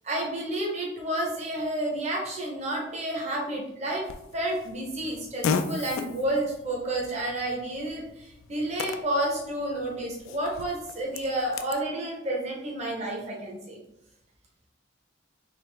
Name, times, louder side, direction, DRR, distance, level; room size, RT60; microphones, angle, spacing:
voice 1, 0.0-13.8, right 1 dB, 35° right, -2 dB, 0.7 m, -30 dB
Fart, 4.1-11.8, left 5 dB, 80° left, 0.3 m, -36 dB
3.3 x 2.9 x 3.2 m, 0.83 s
head